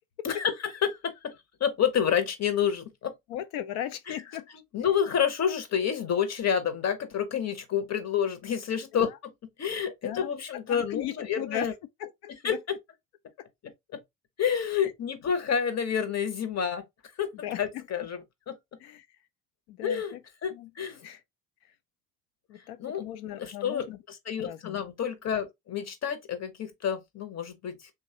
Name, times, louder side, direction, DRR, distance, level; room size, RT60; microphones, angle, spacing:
voice 1, 0.2-3.1 4.1-4.2 4.7-9.3 9.6-11.7 12.3-12.8 13.9-14.0 14.4-16.8 17.2-17.3 17.6-18.6 19.8-21.0 22.8-23.0 23.4-27.9, left 8 dB, 40° left, 0.9 m, -29 dB
voice 2, 3.3-4.5 8.9-9.1 10.0-10.4 10.7-11.7 12.0-12.6 13.4-13.5 14.8-14.9 17.4-17.8 18.8-19.1 19.7-20.2 20.5-20.7 21.0-21.2 22.5-24.0 24.4-24.8, left 12 dB, 75° left, 0.6 m, -37 dB
3.0 x 2.4 x 2.7 m
hypercardioid pair, 55°, 39 cm